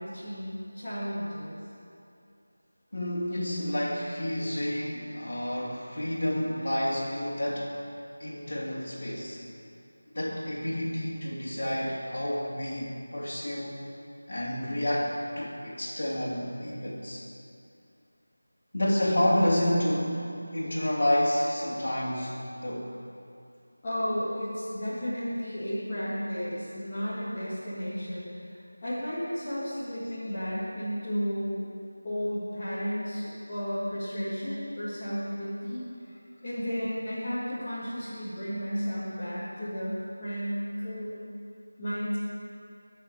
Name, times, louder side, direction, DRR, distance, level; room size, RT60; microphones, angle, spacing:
voice 1, 0.0-1.5 23.8-28.4 28.8-31.6 32.0-35.9 36.4-41.2 41.8-42.2, equal, 15° left, -15 dB, 1.9 m, -33 dB
voice 2, 2.9-7.8 8.2-9.4 10.1-13.7 14.3-17.2 18.7-22.9, left 1 dB, 45° left, -5 dB, 3.1 m, -29 dB
18.0 x 6.9 x 7.2 m, 2.6 s
figure-of-eight pair, 180°, 0 cm